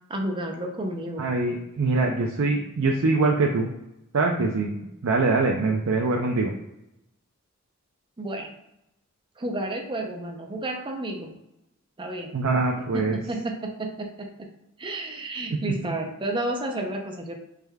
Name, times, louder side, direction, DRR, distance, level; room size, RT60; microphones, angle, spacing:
voice 1, 0.1-1.2 8.2-8.5 9.4-11.3 12.0-12.3 12.8-14.5 14.8-17.3, right 1 dB, 25° right, 3 dB, 0.6 m, -31 dB
voice 2, 1.2-3.7 4.1-4.7 5.0-6.5 12.3-13.2, right 3 dB, 75° right, 0 dB, 0.5 m, -23 dB
4.8 x 3.3 x 2.3 m, 0.87 s
head